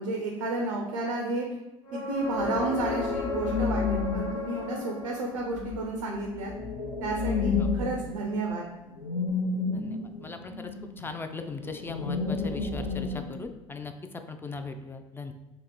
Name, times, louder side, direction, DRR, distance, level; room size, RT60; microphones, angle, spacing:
voice 1, 0.0-1.5 1.9-6.5 7.0-8.6, right 2 dB, 75° right, 1 dB, 0.5 m, -31 dB
sound 1, 1.8-5.6 9.3-9.4, left 4 dB, 65° left, 1.1 m, -35 dB
sound 2, 2.3-13.3, left 4 dB, 85° left, 0.7 m, -31 dB
voice 2, 9.7-15.3, left 4 dB, 15° left, 6 dB, 0.3 m, -39 dB
2.9 x 2.9 x 3.7 m, 1.0 s
figure-of-eight pair, 65°, 16 cm